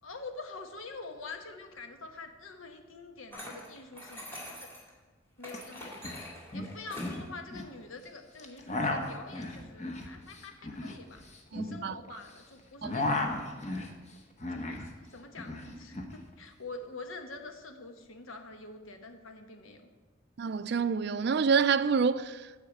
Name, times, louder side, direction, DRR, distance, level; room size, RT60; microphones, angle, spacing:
voice 1, 0.0-4.7 5.4-6.2 6.5-11.2 11.5-13.3 14.5-19.9, left 3 dB, 80° left, 1.2 m, -46 dB
sound 1, 3.3-4.9 5.4-7.2, left 1 dB, 10° left, 2.3 m, -44 dB
sound 2, 5.5-5.6 5.8-6.2 6.5-7.7 8.4-12.4 12.6-14.9 15.2-16.1, left 2 dB, 35° left, 1.0 m, -35 dB
voice 2, 11.5-12.0 12.8-13.0 20.4-22.6, right 5 dB, 55° right, 0.4 m, -27 dB
10.0 x 4.9 x 7.9 m
head